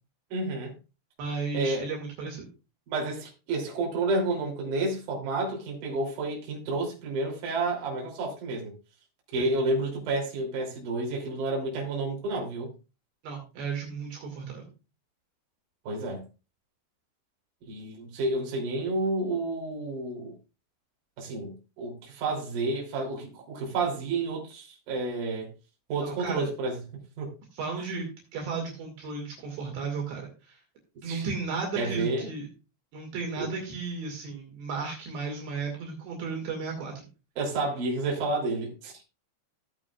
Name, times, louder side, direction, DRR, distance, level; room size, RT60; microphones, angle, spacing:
voice 1, 0.3-0.7 1.5-1.9 2.9-8.7 9.3-12.7 15.8-16.2 17.7-20.3 21.2-25.5 25.9-26.8 27.2-27.3 31.0-31.3 31.8-32.3 33.4-33.5 37.4-39.0, right 2 dB, 45° right, 4.1 m, -30 dB
voice 2, 1.2-2.5 9.4-9.5 13.2-14.7 26.0-26.5 27.5-30.6 31.0-32.5 32.9-36.9, right 4 dB, 65° right, 4.2 m, -34 dB
16.0 x 8.6 x 2.4 m
omnidirectional pair, 5.7 m